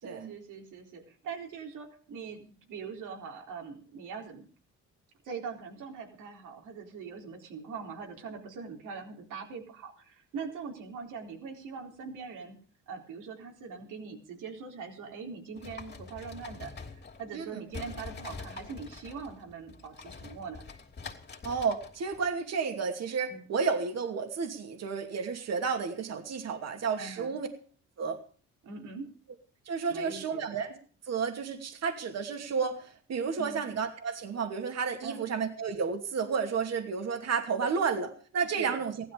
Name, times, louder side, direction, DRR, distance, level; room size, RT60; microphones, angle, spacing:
voice 1, 0.0-4.4 5.2-12.6 12.9-20.6 23.3-23.5 27.0-27.4 28.6-29.1 29.9-30.4 33.4-33.6 35.0-35.3 38.6-38.8, right 5 dB, 85° right, 2 dB, 4.0 m, -42 dB
sound 1, 15.6-17.4 17.7-22.3, left 4 dB, 35° left, 3.0 m, -45 dB
voice 2, 21.4-27.5 28.0-28.2 29.7-30.8 31.1-39.1, right 5 dB, 60° right, 5 dB, 2.6 m, -32 dB
16.0 x 12.5 x 5.2 m, 0.43 s
cardioid pair, 90°, 30 cm